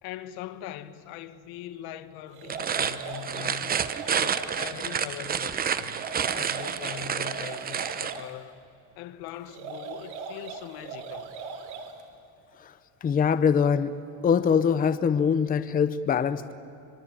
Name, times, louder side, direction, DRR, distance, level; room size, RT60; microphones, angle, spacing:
voice 1, 0.0-3.9 4.1-8.6 9.0-11.3, left 12 dB, 80° left, 1.6 m, -41 dB
sound 1, 2.3-4.8 5.8-8.3 9.4-12.0, right 5 dB, 85° right, 3.3 m, -39 dB
sound 2, 2.4-8.2, right 7 dB, 25° right, 0.8 m, -29 dB
voice 2, 13.0-16.5, left 7 dB, 25° left, 0.8 m, -23 dB
25.0 x 23.0 x 8.9 m
cardioid pair, 155°, 37 cm